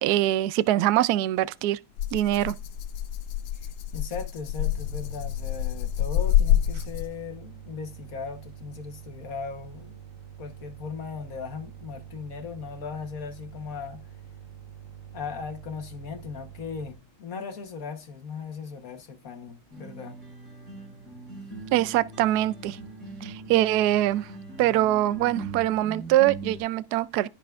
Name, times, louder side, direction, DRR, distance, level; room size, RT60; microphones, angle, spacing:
voice 1, 0.0-1.8 2.1-2.5 21.7-22.8 23.2-24.3 24.6-27.3, right 14 dB, 80° right, 0.8 m, -23 dB
Rattle (instrument), 2.0-7.3, left 11 dB, 85° left, 1.6 m, -27 dB
voice 2, 3.5-10.0 10.4-14.0 15.1-20.2, left 5 dB, 50° left, 1.3 m, -38 dB
sound 1, 4.6-16.9, right 9 dB, 60° right, 1.5 m, -46 dB
sound 2, 19.7-26.6, right 3 dB, 40° right, 5.3 m, -41 dB
15.5 x 5.8 x 2.4 m
omnidirectional pair, 2.3 m